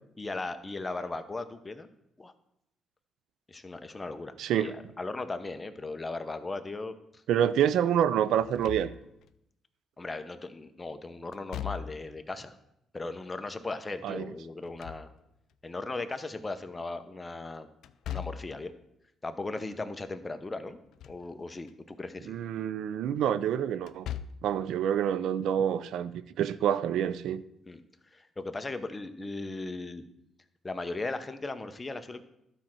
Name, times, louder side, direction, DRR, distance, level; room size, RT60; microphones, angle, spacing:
voice 1, 0.2-1.9 2.2-2.3 3.5-6.9 10.0-12.5 12.9-15.1 15.6-17.7 18.1-18.7 19.2-20.8 21.1-22.3 27.7-27.8 28.1-30.0 30.6-32.2, left 3 dB, 20° left, 9 dB, 0.8 m, -37 dB
voice 2, 4.4-4.7 7.3-8.9 14.0-14.3 22.3-24.1 24.4-27.4, right 9 dB, 80° right, 15 dB, 0.4 m, -27 dB
Slam / Thump thud, 8.4-9.3 11.3-12.2 14.5-15.5 17.8-18.6 20.7-21.3 21.7-21.8 23.8-24.6, left 10 dB, 75° left, 0.4 m, -40 dB
12.0 x 4.3 x 6.0 m, 0.80 s
cardioid pair, 90°, 0 cm